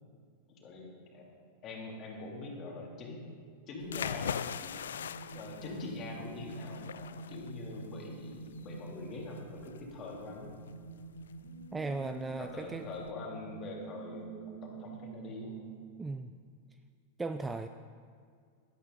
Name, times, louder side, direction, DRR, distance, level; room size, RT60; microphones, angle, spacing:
voice 1, 0.5-1.2 1.6-3.2 3.7-4.7 5.3-10.5 12.4-15.6, left 3 dB, 30° left, -2 dB, 3.0 m, -43 dB
sound 1, 2.0-15.9, right 4 dB, 60° right, 2.3 m, -48 dB
sound 2, 3.8-13.1, left 8 dB, 65° left, 0.3 m, -43 dB
voice 2, 11.7-12.9 16.0-16.3 17.2-17.7, right 3 dB, 10° right, 8 dB, 0.4 m, -36 dB
13.0 x 12.0 x 3.9 m, 2.1 s
figure-of-eight pair, 90°, 0 cm